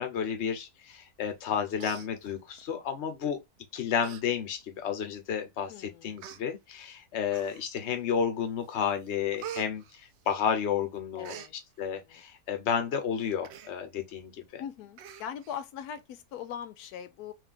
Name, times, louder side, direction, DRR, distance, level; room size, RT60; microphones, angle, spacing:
voice 1, 0.0-3.4 3.7-11.4 11.8-14.6, left 7 dB, 50° left, 1.1 m, -31 dB
Human voice, 1.3-1.5 1.8-2.7 3.4-3.6 4.0-4.2 4.6-4.7 5.5-5.6 6.2-6.4 7.3-7.8 8.3-8.7 9.0-10.7 10.9-11.5 13.4-13.7 14.1-14.2 14.5-14.6 15.0-15.6 16.0-16.1, right 10 dB, 70° right, 0.6 m, -44 dB
voice 2, 5.7-6.3 11.2-11.5 11.9-12.2 14.6-17.3, left 8 dB, 85° left, 1.1 m, -41 dB
3.6 x 2.8 x 3.7 m
omnidirectional pair, 1.6 m